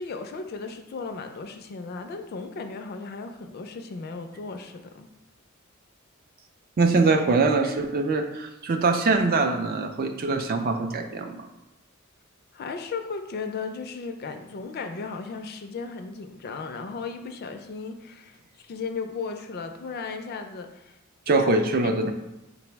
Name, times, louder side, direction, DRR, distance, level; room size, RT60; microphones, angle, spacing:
voice 1, 0.0-5.1 12.5-21.0 21.3-21.5 21.8-22.0, left 4 dB, 50° left, 6 dB, 0.4 m, -36 dB
voice 2, 6.8-11.5 21.3-22.1, right 3 dB, 45° right, 5 dB, 0.4 m, -23 dB
4.0 x 2.0 x 4.4 m, 0.95 s
head